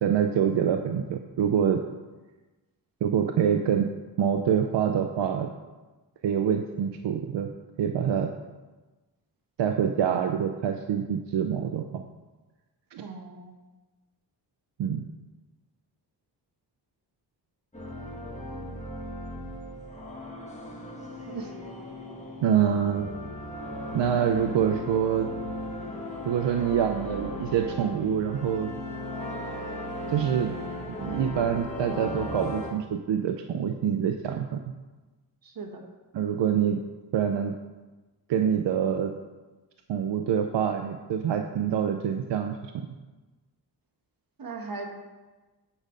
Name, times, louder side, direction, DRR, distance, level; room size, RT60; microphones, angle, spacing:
voice 1, 0.0-1.8 3.0-3.9 4.2-5.5 6.2-7.5 7.8-8.3 9.6-12.0 12.9-13.0 14.8-15.0 22.4-23.1 23.9-25.3 26.2-28.7 30.1-30.5 31.0-34.7 36.1-36.8 37.1-37.5 38.3-39.1 39.9-42.9, right 8 dB, 85° right, 5 dB, 0.6 m, -26 dB
voice 2, 13.0-13.5 21.3-21.5 22.7-23.0 35.4-35.9 44.4-44.9, right 3 dB, 55° right, 2 dB, 1.4 m, -38 dB
sound 1, 17.7-32.7, left 1 dB, 15° left, 1.6 m, -37 dB
8.6 x 5.2 x 5.0 m, 1.2 s
wide cardioid pair, 120°, 42 cm